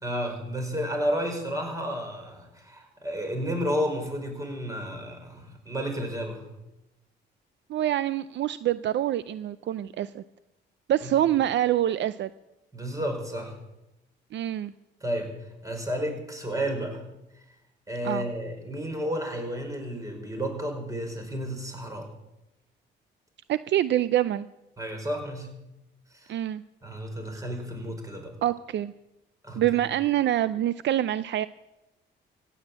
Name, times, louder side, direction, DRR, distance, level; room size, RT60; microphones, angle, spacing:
voice 1, 0.0-6.4 11.0-11.1 12.7-13.5 15.0-15.3 15.6-17.0 17.9-22.1 24.8-25.5 26.1-26.3 26.8-28.3 29.4-29.6, equal, 15° right, 3 dB, 5.1 m, -32 dB
voice 2, 7.7-10.2 10.9-12.3 14.3-14.7 18.0-18.2 23.5-24.5 26.3-26.6 28.4-28.9 29.6-31.5, right 12 dB, 65° right, 15 dB, 0.5 m, -25 dB
16.0 x 8.9 x 8.7 m, 0.93 s
cardioid pair, 90°, 20 cm